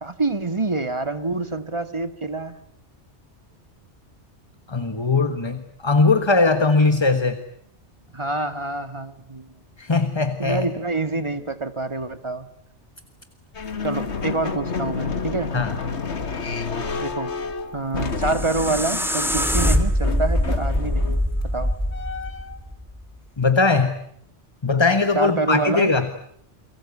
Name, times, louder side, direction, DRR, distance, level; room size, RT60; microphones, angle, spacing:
voice 1, 0.0-2.6 8.1-9.6 10.4-12.5 13.8-15.5 17.0-17.3 17.7-21.2 21.5-21.7 25.1-25.9, right 3 dB, 25° right, 10 dB, 1.7 m, -26 dB
voice 2, 4.7-7.4 9.8-10.7 15.5-15.8 23.4-24.0 24.6-26.1, left 3 dB, 25° left, 9 dB, 1.4 m, -20 dB
sound 1, 13.5-22.6, left 4 dB, 70° left, 1.9 m, -30 dB
sound 2, 18.1-23.1, equal, ahead, 2.7 m, -23 dB
30.0 x 23.0 x 8.3 m, 0.70 s
omnidirectional pair, 1.2 m